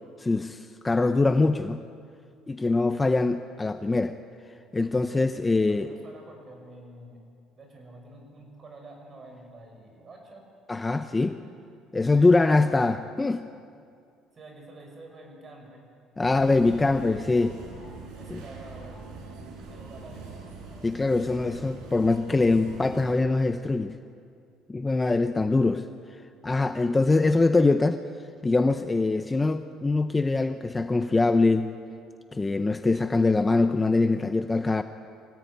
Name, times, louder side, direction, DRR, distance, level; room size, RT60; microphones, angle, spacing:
voice 1, 0.2-1.8 2.5-4.2 4.7-5.9 10.7-11.3 11.9-13.5 16.2-17.6 18.3-18.4 20.8-24.0 24.7-25.9 26.4-28.0 28.4-31.8 32.3-34.8, left 3 dB, 15° left, 9 dB, 0.6 m, -23 dB
voice 2, 5.7-7.2 7.6-10.5 11.1-11.5 12.0-12.9 14.3-15.9 16.7-17.6 18.2-19.1 19.7-20.3, right 2 dB, 30° right, 2 dB, 5.7 m, -48 dB
sound 1, 16.2-23.2, right 4 dB, 70° right, 6.0 m, -43 dB
24.5 x 17.5 x 9.6 m, 2.4 s
cardioid pair, 145°, 0 cm